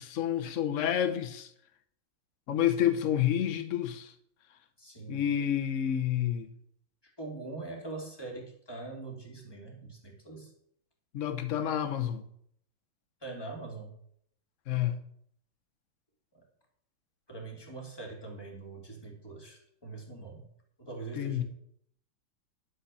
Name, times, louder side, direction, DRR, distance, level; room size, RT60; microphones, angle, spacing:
voice 1, 0.0-1.5 2.5-4.1 5.1-6.5 11.1-12.2 14.7-15.0 21.1-21.4, left 10 dB, 50° left, 1.0 m, -29 dB
voice 2, 4.8-5.2 7.0-10.5 13.2-13.9 17.3-20.5 20.8-21.4, right 3 dB, 10° left, 2.5 m, -43 dB
11.0 x 5.7 x 7.0 m
omnidirectional pair, 2.3 m